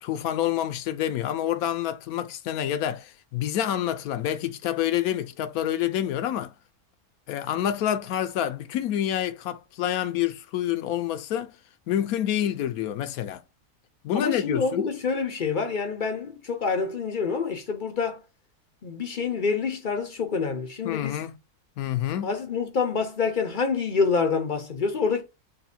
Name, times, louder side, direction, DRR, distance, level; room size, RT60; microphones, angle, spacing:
voice 1, 0.0-6.5 7.3-11.5 11.9-13.4 14.0-14.9 20.8-21.4 21.8-22.3, left 11 dB, 75° left, 1.1 m, -27 dB
voice 2, 14.1-18.2 18.8-21.2 22.2-25.2, left 5 dB, 50° left, 0.6 m, -27 dB
6.8 x 2.4 x 2.7 m
omnidirectional pair, 1.6 m